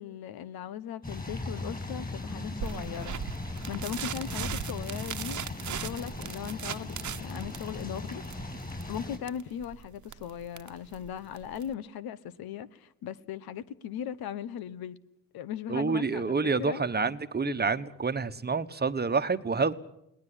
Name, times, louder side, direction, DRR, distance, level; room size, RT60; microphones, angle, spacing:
voice 1, 0.0-3.2 3.7-8.6 8.9-15.0 15.3-16.8 17.4-17.5, left 9 dB, 80° left, 1.1 m, -38 dB
sound 1, 1.0-9.2, left 2 dB, 25° left, 6.4 m, -38 dB
sound 2, 2.6-11.7, right 9 dB, 55° right, 1.2 m, -39 dB
voice 2, 15.7-19.7, right 4 dB, 25° right, 1.2 m, -28 dB
22.0 x 18.5 x 9.8 m
cardioid pair, 85°, 36 cm